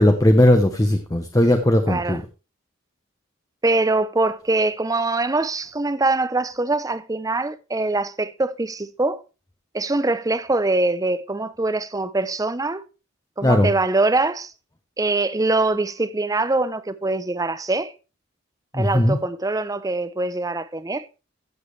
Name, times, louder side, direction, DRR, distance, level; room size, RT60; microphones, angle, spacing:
voice 1, 0.0-2.2 13.4-13.7 18.7-19.2, left 1 dB, 15° left, 0.9 m, -17 dB
voice 2, 1.9-2.2 3.6-9.2 9.7-12.8 13.4-14.5 15.0-17.9 18.7-21.1, right 2 dB, 15° right, 0.6 m, -23 dB
15.0 x 7.3 x 3.2 m
head